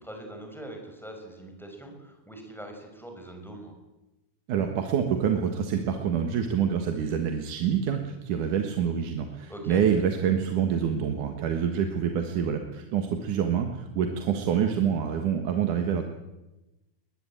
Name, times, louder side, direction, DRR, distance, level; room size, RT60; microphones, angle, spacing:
voice 1, 0.0-3.7 9.5-9.8, right 1 dB, ahead, 3 dB, 5.7 m, -42 dB
voice 2, 4.5-16.0, right 8 dB, 75° right, 5 dB, 3.1 m, -26 dB
21.5 x 21.0 x 9.0 m, 1.0 s
omnidirectional pair, 3.6 m